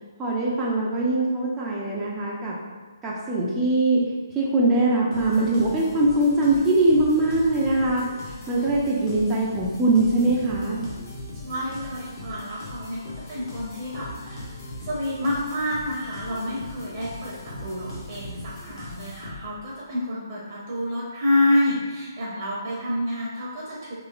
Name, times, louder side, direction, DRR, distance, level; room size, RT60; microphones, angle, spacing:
voice 1, 0.2-2.6 3.0-4.0 4.3-10.8, right 2 dB, 15° right, -5 dB, 0.4 m, -22 dB
sound 1, 5.1-19.7, left 2 dB, 45° left, 0.7 m, -39 dB
voice 2, 11.4-23.9, left 1 dB, 40° right, -6 dB, 0.7 m, -28 dB
3.0 x 3.0 x 2.3 m, 1.3 s
figure-of-eight pair, 135°, 2 cm